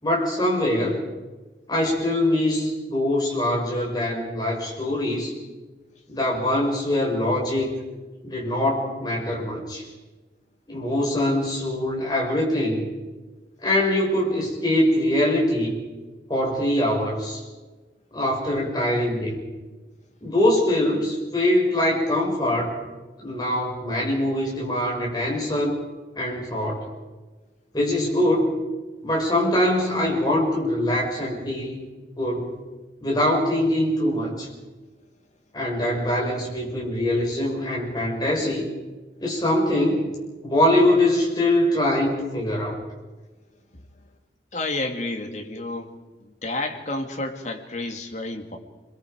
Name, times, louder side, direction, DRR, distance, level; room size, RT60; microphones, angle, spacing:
voice 1, 0.0-1.0 1.7-5.3 6.1-7.7 8.2-9.9 10.7-12.9 13.6-15.8 16.3-17.4 18.1-19.4 20.2-22.7 23.2-25.8 26.2-26.8 27.7-28.6 29.0-31.8 32.2-32.6 33.0-34.5 35.5-38.7 39.2-40.1 40.4-42.8, left 1 dB, 25° left, -2 dB, 6.1 m, -23 dB
voice 2, 44.5-45.9 46.2-48.6, left 2 dB, 40° left, 3 dB, 2.3 m, -30 dB
28.0 x 22.0 x 5.2 m, 1.3 s
head